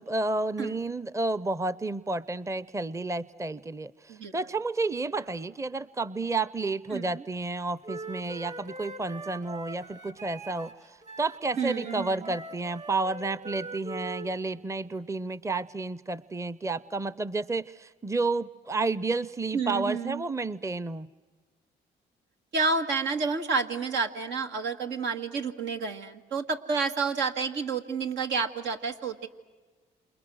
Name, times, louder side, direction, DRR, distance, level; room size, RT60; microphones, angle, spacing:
voice 1, 0.0-21.1, right 3 dB, 15° right, 18 dB, 0.7 m, -31 dB
voice 2, 6.9-7.2 11.6-12.3 19.5-20.2 22.5-29.3, right 4 dB, 80° right, 5 dB, 1.8 m, -30 dB
Wind instrument woodwind instrument, 7.8-14.3, right 2 dB, 35° right, 2.7 m, -42 dB
28.0 x 28.0 x 6.3 m, 1.3 s
supercardioid pair, 60°, 19 cm